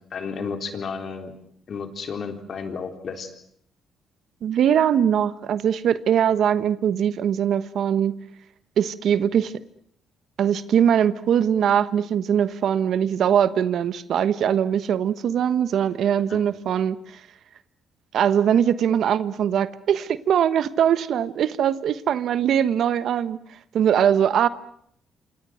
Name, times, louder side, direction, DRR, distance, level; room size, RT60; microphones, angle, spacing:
voice 1, 0.1-1.3 1.7-3.3 16.3-16.4, left 5 dB, 55° left, 6 dB, 3.8 m, -32 dB
voice 2, 4.4-8.1 8.8-9.5 10.4-17.2 18.1-23.4 23.7-24.5, right 9 dB, 70° right, 14 dB, 1.2 m, -21 dB
27.5 x 27.0 x 6.4 m, 0.67 s
cardioid pair, 90°, 0 cm